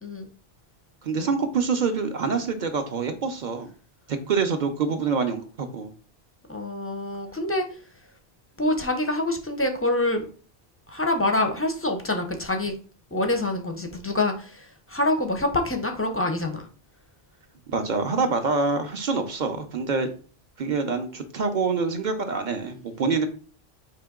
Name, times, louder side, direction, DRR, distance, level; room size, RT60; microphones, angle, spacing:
voice 1, 1.0-3.7 4.1-5.9 17.7-20.1 20.6-23.3, right 4 dB, 55° right, 6 dB, 0.6 m, -26 dB
voice 2, 6.5-7.8 8.6-10.3 10.9-12.7 13.1-16.7, left 2 dB, 20° left, 5 dB, 0.4 m, -26 dB
5.0 x 2.8 x 3.5 m, 0.40 s
omnidirectional pair, 1.1 m